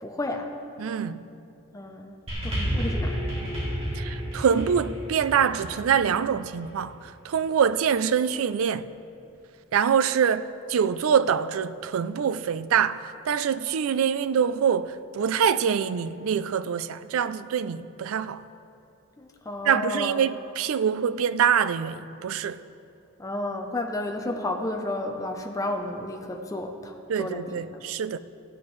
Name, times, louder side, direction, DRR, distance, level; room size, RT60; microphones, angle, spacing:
voice 1, 0.0-0.5 1.7-2.2 2.4-3.2 19.2-20.2 23.2-27.6, left 1 dB, 15° left, 0.6 m, -32 dB
voice 2, 0.8-1.2 4.0-8.9 9.7-18.4 19.6-22.6 27.1-28.2, right 7 dB, 75° right, 0.4 m, -25 dB
sound 1, 2.3-6.8 7.7-7.8, equal, 30° right, 2.4 m, -31 dB
15.5 x 9.7 x 3.1 m
head